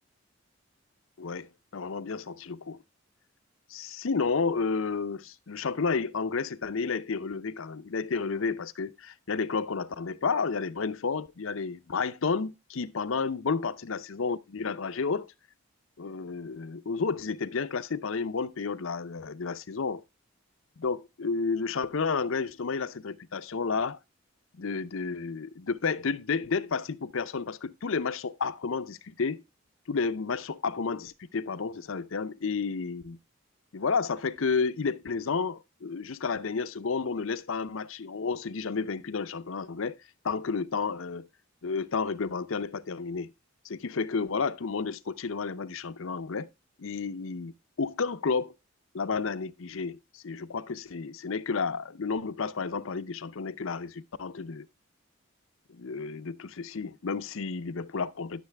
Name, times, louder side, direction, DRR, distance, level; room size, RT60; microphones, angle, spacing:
voice 1, 1.2-2.8 3.7-15.3 16.0-20.0 20.8-24.0 24.6-29.4 29.9-33.2 33.7-40.0 40.2-41.3 41.6-43.3 43.6-46.5 46.8-47.5 47.8-48.5 48.9-54.7 55.7-58.4, left 5 dB, 70° left, 0.6 m, -31 dB
12.0 x 6.6 x 3.4 m
head